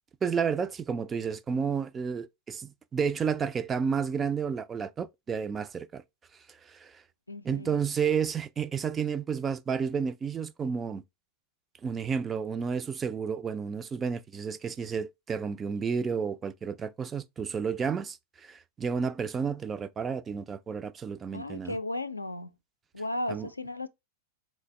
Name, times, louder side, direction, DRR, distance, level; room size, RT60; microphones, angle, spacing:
voice 1, 0.2-6.0 6.5-7.0 7.4-11.0 11.8-21.8 23.3-23.5, right 6 dB, 20° right, 0.3 m, -31 dB
voice 2, 7.3-7.8 21.3-22.5 22.9-23.9, left 1 dB, 85° left, 0.4 m, -35 dB
3.9 x 3.1 x 3.3 m
figure-of-eight pair, 90°, 0 cm